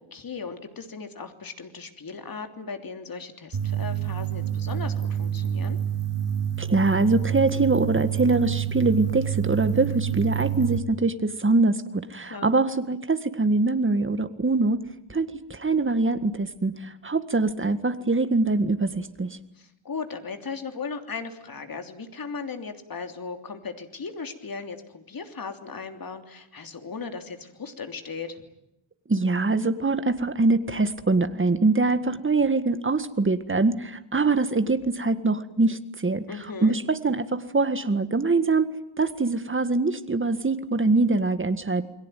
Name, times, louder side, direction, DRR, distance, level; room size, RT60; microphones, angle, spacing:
voice 1, 0.1-5.8 12.3-12.5 19.5-28.4 36.3-36.7, left 5 dB, 45° left, 6 dB, 3.2 m, -37 dB
sound 1, 3.5-10.8, right 10 dB, 65° right, 4.2 m, -28 dB
voice 2, 6.6-14.8 15.1-19.3 29.1-36.2 36.6-38.7 39.0-41.8, right 3 dB, 25° right, 10 dB, 1.8 m, -23 dB
29.0 x 22.0 x 9.3 m, 0.83 s
wide cardioid pair, 150°, 48 cm